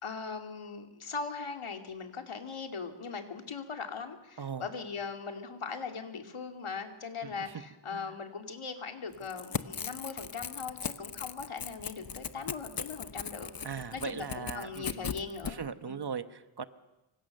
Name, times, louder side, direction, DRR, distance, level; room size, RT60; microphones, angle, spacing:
voice 1, 0.0-13.5 13.9-16.0, left 5 dB, 90° left, 4 dB, 2.6 m, -40 dB
voice 2, 4.4-4.7 7.2-7.5 7.9-8.2 13.6-15.1 15.4-16.6, right 6 dB, 55° right, 11 dB, 1.2 m, -39 dB
Crackle / Tearing, 9.2-15.5, left 6 dB, 45° left, 0.9 m, -38 dB
25.0 x 25.0 x 6.7 m, 0.97 s
wide cardioid pair, 105°, 49 cm